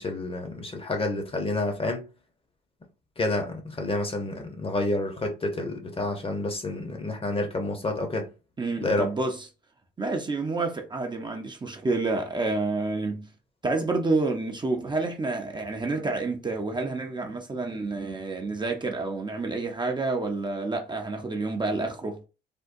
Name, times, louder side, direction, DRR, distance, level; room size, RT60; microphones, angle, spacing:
voice 1, 0.0-2.1 3.2-8.3 8.8-9.1, left 2 dB, 30° left, 0.8 m, -29 dB
voice 2, 8.6-9.5 10.0-13.3 13.6-22.2, right 3 dB, 20° right, 0.6 m, -29 dB
3.5 x 2.1 x 2.5 m
cardioid pair, 90°, 20 cm